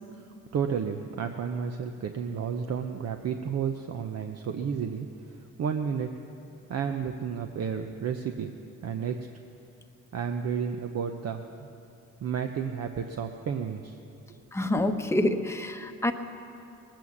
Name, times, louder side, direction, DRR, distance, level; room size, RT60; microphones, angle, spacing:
voice 1, 0.5-6.1 6.7-8.5 8.8-9.3 10.1-11.7 12.2-14.0, right 7 dB, 55° right, 6 dB, 0.8 m, -32 dB
voice 2, 14.5-16.1, left 1 dB, 10° left, 6 dB, 0.9 m, -27 dB
19.5 x 8.9 x 7.2 m, 2.7 s
cardioid pair, 90°, 30 cm